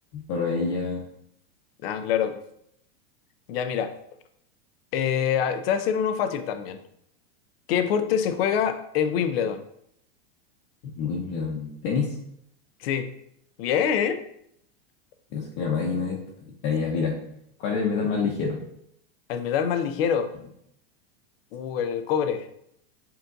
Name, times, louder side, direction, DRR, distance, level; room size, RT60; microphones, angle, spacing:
voice 1, 0.1-1.1 10.8-12.2 15.3-17.2 17.6-18.6, left 5 dB, 40° left, -3 dB, 0.8 m, -27 dB
voice 2, 1.8-2.4 3.5-3.9 4.9-6.8 7.7-9.6 12.8-13.1 13.6-14.2 19.3-20.3 21.5-22.5, left 8 dB, 70° left, 9 dB, 0.5 m, -25 dB
7.1 x 2.5 x 2.5 m, 0.73 s
supercardioid pair, 140°, 31 cm